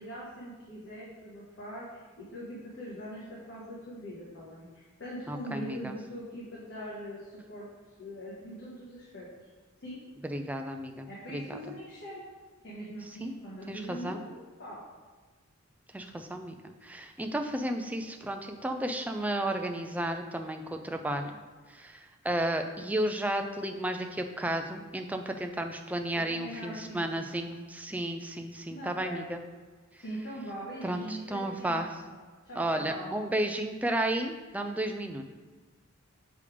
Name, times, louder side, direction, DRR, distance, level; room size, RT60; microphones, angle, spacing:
voice 1, 0.0-7.7 8.0-9.3 9.8-10.0 11.1-12.3 12.6-14.8 26.3-27.6 28.7-29.2 30.0-32.2 32.4-33.1, equal, 55° left, -7 dB, 1.4 m, -42 dB
voice 2, 5.3-6.0 10.2-11.4 13.2-13.3 13.7-14.2 15.9-16.5 16.8-21.3 21.7-29.4 30.8-31.9 32.6-35.2, right 1 dB, 5° right, 5 dB, 0.4 m, -33 dB
6.8 x 3.4 x 4.9 m, 1.4 s
head